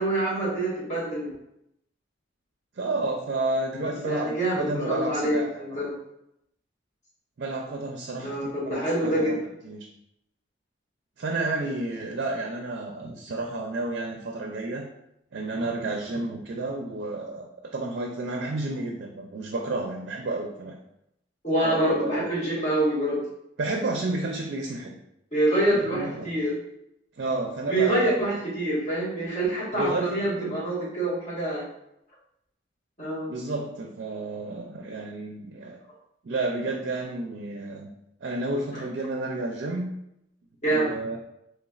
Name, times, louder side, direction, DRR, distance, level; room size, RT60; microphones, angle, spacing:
voice 1, 0.0-1.3 4.0-5.9 8.2-9.3 21.4-23.2 25.3-26.6 27.7-31.6 33.0-33.3 40.6-40.9, right 1 dB, 40° left, -8 dB, 1.5 m, -26 dB
voice 2, 2.8-5.7 7.4-9.4 9.6-9.9 11.2-14.9 15.3-20.8 21.6-22.3 23.6-25.0 25.6-26.3 27.2-28.3 29.7-30.6 33.3-35.8 36.2-37.9 38.2-39.9 40.7-41.2, right 2 dB, 60° right, 1 dB, 0.4 m, -31 dB
4.1 x 3.3 x 2.3 m, 0.80 s
head